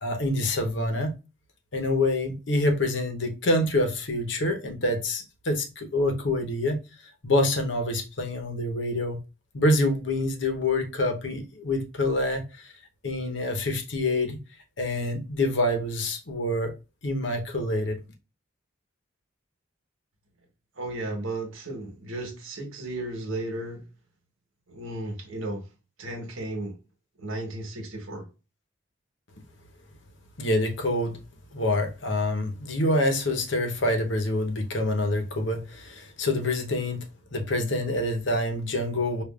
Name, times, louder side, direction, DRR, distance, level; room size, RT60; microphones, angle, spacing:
voice 1, 0.0-1.2 1.7-6.8 7.2-9.2 9.5-12.7 13.0-14.4 14.8-16.7 17.0-18.0 30.4-31.2 31.5-37.0 37.3-39.2, left 1 dB, 65° left, 0.9 m, -26 dB
voice 2, 20.8-23.8 24.7-25.6 26.0-26.7 27.2-28.2, right 2 dB, 90° right, 1.3 m, -34 dB
5.0 x 2.5 x 2.4 m
head